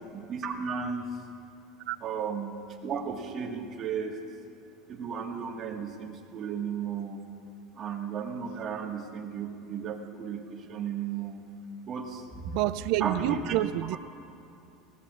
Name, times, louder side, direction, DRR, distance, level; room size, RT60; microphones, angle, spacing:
voice 1, 0.1-1.1 2.0-4.1 4.9-7.2 7.8-11.4 11.9-12.4 13.0-14.0, right 6 dB, 30° right, 1 dB, 1.5 m, -34 dB
voice 2, 12.5-14.0, right 15 dB, 55° right, 14 dB, 0.3 m, -28 dB
20.0 x 18.5 x 2.4 m, 2.8 s
cardioid pair, 160°, 0 cm